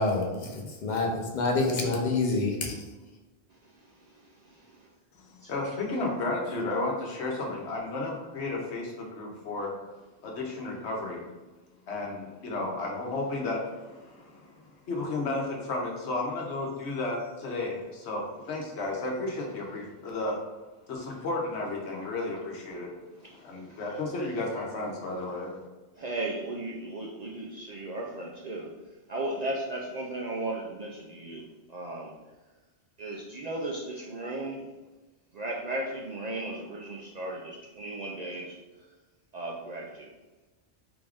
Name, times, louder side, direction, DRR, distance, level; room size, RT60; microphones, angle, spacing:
voice 1, 0.0-1.1 1.3-2.8, left 3 dB, 50° left, 0 dB, 0.7 m, -27 dB
voice 2, 3.5-4.9 5.4-5.5 23.2-23.4 23.7-23.8 26.0-28.8 29.1-32.1 33.0-34.7 35.3-38.9 39.3-40.1, right 2 dB, 60° right, -2 dB, 0.4 m, -36 dB
voice 3, 5.1-9.7 10.2-11.3 11.9-20.4 20.9-23.0 23.3-25.6, left 2 dB, 80° left, -1 dB, 1.1 m, -33 dB
3.9 x 2.4 x 3.4 m, 1.2 s
omnidirectional pair, 1.1 m